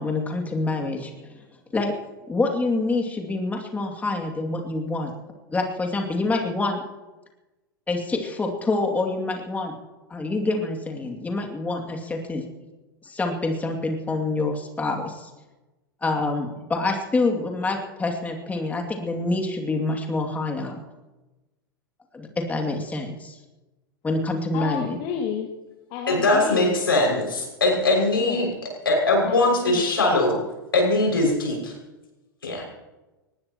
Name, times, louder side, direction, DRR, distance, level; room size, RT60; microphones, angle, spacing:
voice 1, 0.0-1.4 1.7-1.9 2.3-5.1 5.5-6.8 7.9-9.8 10.1-12.4 13.0-15.3 16.0-20.8 22.1-23.4 24.0-25.0, left 2 dB, 15° left, 2 dB, 2.6 m, -26 dB
voice 2, 24.5-25.5 25.9-26.8 27.9-28.5 29.2-29.9, left 8 dB, 45° left, 1 dB, 2.1 m, -31 dB
voice 3, 26.1-28.5 28.8-30.4 30.7-31.7 32.4-32.6, left 2 dB, 80° left, 1 dB, 6.4 m, -21 dB
23.5 x 20.0 x 3.1 m, 1.1 s
figure-of-eight pair, 95°, 12 cm